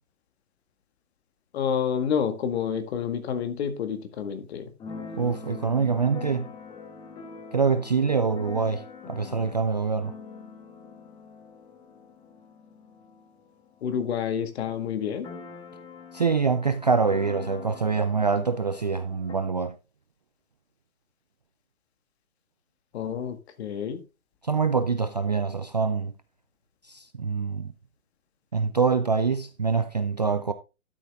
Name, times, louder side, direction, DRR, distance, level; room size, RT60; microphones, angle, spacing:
voice 1, 1.5-4.7 13.8-15.3 22.9-24.0, left 7 dB, 45° left, 1.9 m, -29 dB
Keyboard (musical), 4.8-14.3 14.6-14.7 14.9-19.3, left 5 dB, 10° left, 1.1 m, -43 dB
voice 2, 5.1-6.5 7.5-10.1 16.1-19.7 24.4-26.1 26.9-27.7 28.5-30.5, right 5 dB, 30° right, 0.4 m, -25 dB
12.0 x 6.4 x 3.6 m
hypercardioid pair, 145°, 43 cm